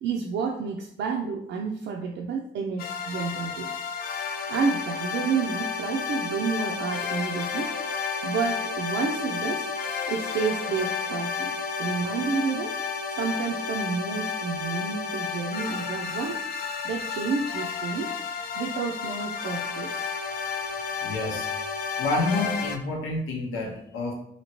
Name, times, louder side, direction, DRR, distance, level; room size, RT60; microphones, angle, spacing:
voice 1, 0.0-3.7 4.5-7.7 8.2-9.7 10.1-11.5 11.8-12.8 13.1-16.4 16.8-18.1 18.5-20.1, right 5 dB, 65° right, 0 dB, 0.4 m, -30 dB
sound 1, 2.8-22.8, left 6 dB, 50° left, 0.4 m, -31 dB
voice 2, 21.0-21.5 22.0-24.1, left 2 dB, 85° left, -1 dB, 0.9 m, -28 dB
2.8 x 2.8 x 2.9 m, 0.70 s
cardioid pair, 90°, 20 cm